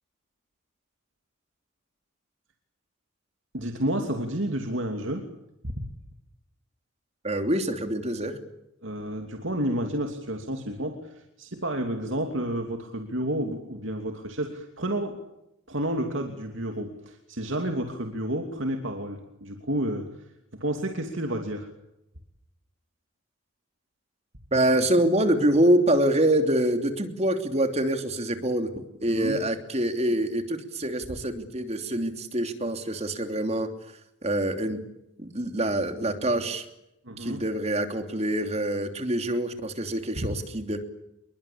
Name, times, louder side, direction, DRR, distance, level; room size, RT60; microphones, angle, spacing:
voice 1, 3.5-5.3 5.6-5.9 8.8-15.2 15.7-21.7 29.1-29.4 37.0-37.4 40.2-40.3, right 1 dB, 65° right, 4 dB, 2.9 m, -30 dB
voice 2, 7.2-8.4 24.5-28.7 29.0-33.7 34.2-34.8 35.2-36.7 37.2-40.8, right 1 dB, 30° right, 7 dB, 3.1 m, -25 dB
27.5 x 22.5 x 8.7 m, 0.87 s
head